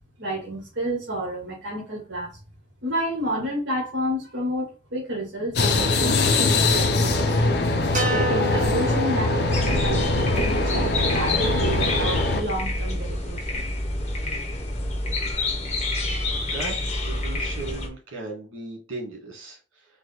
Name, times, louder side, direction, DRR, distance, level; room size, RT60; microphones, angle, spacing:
voice 1, 0.2-2.3 2.8-6.2 6.7-7.5 8.1-13.7, equal, 60° right, -4 dB, 1.6 m, -30 dB
sound 1, 5.5-12.4, left 2 dB, 55° left, 0.7 m, -22 dB
sound 2, 7.9-12.3, right 1 dB, 40° right, 1.3 m, -32 dB
sound 3, 9.5-17.9, left 2 dB, 35° left, 1.0 m, -28 dB
voice 2, 16.2-16.7 17.0-19.9, right 3 dB, 80° right, -1 dB, 1.8 m, -37 dB
4.6 x 2.2 x 4.1 m, 0.35 s
head